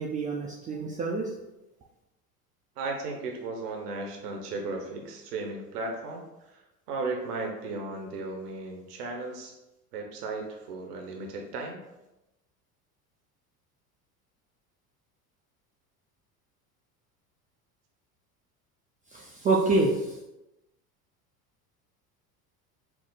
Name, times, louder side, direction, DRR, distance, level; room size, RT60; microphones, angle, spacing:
voice 1, 0.0-1.3 19.1-20.2, right 3 dB, 20° right, -2 dB, 0.3 m, -27 dB
voice 2, 2.8-6.6 6.9-9.5 9.9-11.8, right 3 dB, 80° right, 2 dB, 0.8 m, -35 dB
4.7 x 2.0 x 3.8 m, 0.96 s
hypercardioid pair, 75°, 46 cm